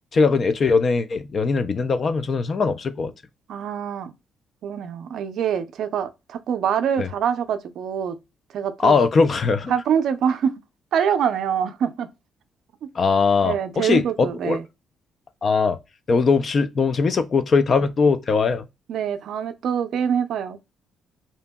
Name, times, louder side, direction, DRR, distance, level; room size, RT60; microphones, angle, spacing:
voice 1, 0.1-3.1 7.0-7.1 8.8-9.7 13.0-14.6 15.4-15.8 16.1-18.6, left 4 dB, 45° left, 0.3 m, -20 dB
voice 2, 3.5-4.1 4.6-8.2 8.5-9.1 9.7-10.5 10.9-12.1 12.8-12.9 13.4-14.6 18.9-20.7, right 8 dB, 70° right, 0.4 m, -25 dB
2.7 x 2.6 x 2.2 m
cardioid pair, 90°, 0 cm